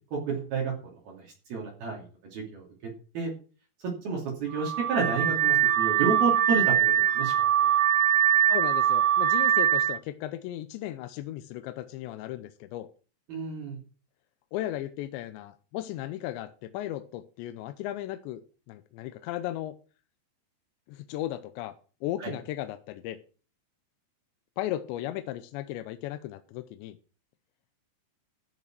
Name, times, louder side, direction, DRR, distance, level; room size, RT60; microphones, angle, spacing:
voice 1, 0.1-2.1 2.3-2.7 3.1-3.3 4.0-7.7 13.3-13.8 22.2-22.3, right 4 dB, 55° right, 4.3 m, -31 dB
Car / Alarm, 4.5-10.0, right 10 dB, 75° right, 3.3 m, -23 dB
voice 2, 8.5-12.9 14.5-18.4 18.7-19.8 20.9-21.7 22.0-23.2 24.6-27.0, left 13 dB, 80° left, 2.8 m, -36 dB
13.5 x 6.7 x 6.1 m
omnidirectional pair, 5.4 m